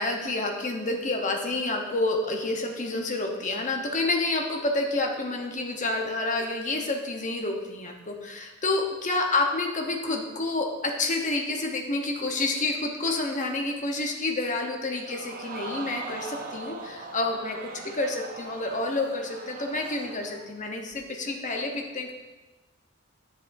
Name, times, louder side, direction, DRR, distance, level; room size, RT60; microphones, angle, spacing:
voice 1, 0.0-22.1, left 2 dB, 35° left, 2 dB, 1.0 m, -29 dB
Crowd, 15.0-20.5 20.9-21.0, right 3 dB, 45° right, 0.7 m, -40 dB
10.5 x 7.5 x 2.6 m, 1.2 s
head